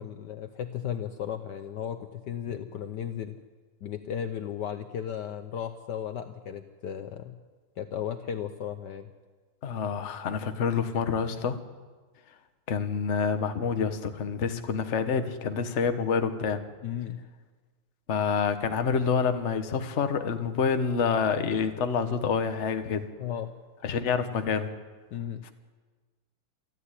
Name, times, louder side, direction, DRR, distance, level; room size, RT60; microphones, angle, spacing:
voice 1, 0.0-3.4 3.8-7.3 7.8-9.1 16.8-17.2 23.2-23.5 25.1-25.4, left 9 dB, 65° left, 8 dB, 1.3 m, -35 dB
voice 2, 9.6-11.6 12.7-16.6 18.1-23.1 23.8-24.7 25.4-25.5, left 6 dB, 40° left, 8 dB, 1.3 m, -27 dB
27.5 x 9.6 x 9.9 m, 1.4 s
omnidirectional pair, 2.2 m